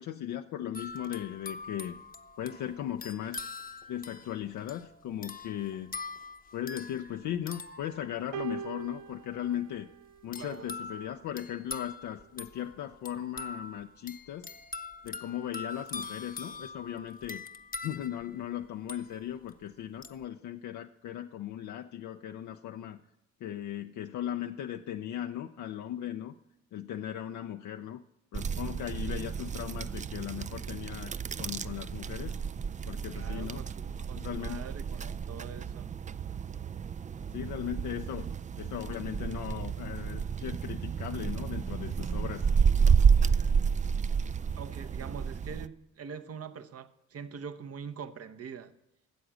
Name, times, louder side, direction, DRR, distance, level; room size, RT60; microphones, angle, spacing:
voice 1, 0.0-2.0 2.4-3.4 3.9-5.9 6.5-9.9 10.2-14.5 15.0-17.4 17.8-23.0 23.4-26.3 26.7-28.0 28.3-31.1 31.4-32.4 32.9-33.6 34.1-34.6 37.3-38.3 38.6-42.5, left 11 dB, 65° left, 0.6 m, -37 dB
sound 1, 0.7-8.6 10.3-19.5 20.0-20.2, left 4 dB, 30° left, 0.9 m, -44 dB
sound 2, 8.3-10.8 11.8-12.0, right 8 dB, 70° right, 0.6 m, -42 dB
sound 3, 28.3-45.7, right 6 dB, 25° right, 0.4 m, -30 dB
voice 2, 33.1-35.9 44.5-48.7, right 6 dB, 50° right, 1.0 m, -44 dB
13.0 x 7.8 x 6.2 m
supercardioid pair, 60°, 31 cm